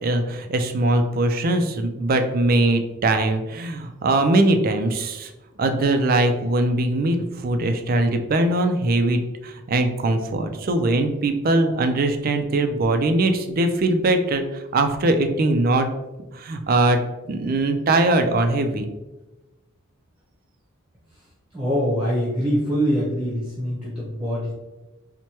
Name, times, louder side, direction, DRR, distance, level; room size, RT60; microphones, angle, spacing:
voice 1, 0.0-5.3 5.6-15.9 16.3-17.0 17.3-18.9, right 2 dB, 45° right, 6 dB, 0.3 m, -21 dB
voice 2, 21.5-24.5, equal, 5° right, -8 dB, 0.8 m, -24 dB
4.4 x 2.1 x 2.9 m, 1.1 s
head